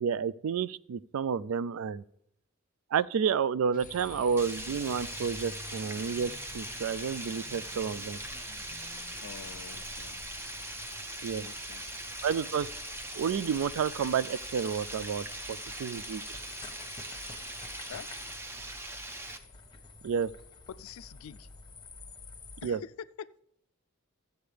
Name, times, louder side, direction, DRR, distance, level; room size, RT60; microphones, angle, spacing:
voice 1, 0.0-2.0 2.9-8.2 11.2-11.5 12.2-12.7 13.1-16.2 20.0-20.3 22.6-22.8, right 6 dB, 80° right, 0.3 m, -30 dB
sound 1, 3.7-12.8, left 4 dB, 40° left, 0.6 m, -55 dB
sound 2, 3.8-22.7, left 4 dB, 20° left, 1.1 m, -48 dB
Water, 4.4-19.4, right 2 dB, 10° right, 0.5 m, -41 dB
voice 2, 9.2-10.2 11.4-12.0 17.9-18.1 20.7-21.5 22.6-22.9 23.2-23.3, left 8 dB, 85° left, 0.4 m, -46 dB
14.5 x 8.0 x 3.3 m
head